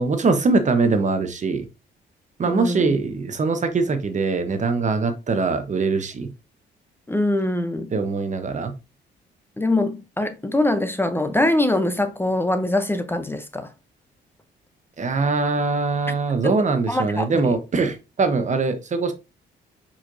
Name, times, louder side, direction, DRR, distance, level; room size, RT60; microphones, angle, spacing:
voice 1, 0.0-1.7 2.4-6.3 7.9-8.7 15.0-19.1, right 4 dB, 35° right, 1.0 m, -22 dB
voice 2, 2.5-2.9 7.1-7.9 9.6-13.7 16.1-16.2 16.4-16.5 16.9-17.6, left 1 dB, 10° left, 0.6 m, -23 dB
4.7 x 4.3 x 2.6 m
cardioid pair, 90°, 20 cm